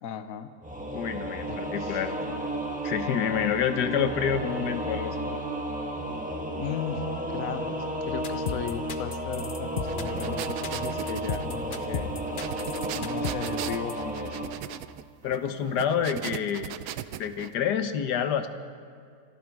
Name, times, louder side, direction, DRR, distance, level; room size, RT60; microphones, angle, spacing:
voice 1, 0.0-0.5 1.5-2.0 3.5-3.6 6.6-12.1 12.9-14.5, left 8 dB, 60° left, 10 dB, 1.2 m, -37 dB
Singing / Musical instrument, 0.6-14.5, right 1 dB, 5° right, 1.3 m, -33 dB
voice 2, 0.9-2.2 2.8-5.2 15.2-16.7 17.2-18.5, left 8 dB, 85° left, 9 dB, 1.5 m, -28 dB
sound 1, 8.2-13.9, left 6 dB, 45° left, 0.7 m, -34 dB
sound 2, 9.7-17.5, right 11 dB, 80° right, 1.1 m, -38 dB
26.0 x 11.5 x 4.7 m, 2.2 s
omnidirectional pair, 1.7 m